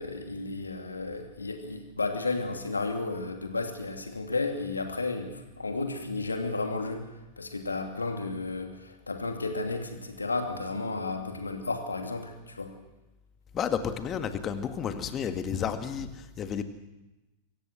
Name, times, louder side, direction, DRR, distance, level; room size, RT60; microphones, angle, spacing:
voice 1, 0.0-12.7, left 3 dB, 80° left, 4 dB, 2.7 m, -33 dB
voice 2, 13.5-16.6, left 7 dB, 30° left, 8 dB, 1.8 m, -31 dB
24.5 x 15.5 x 7.8 m, 1.0 s
figure-of-eight pair, 90°, 0 cm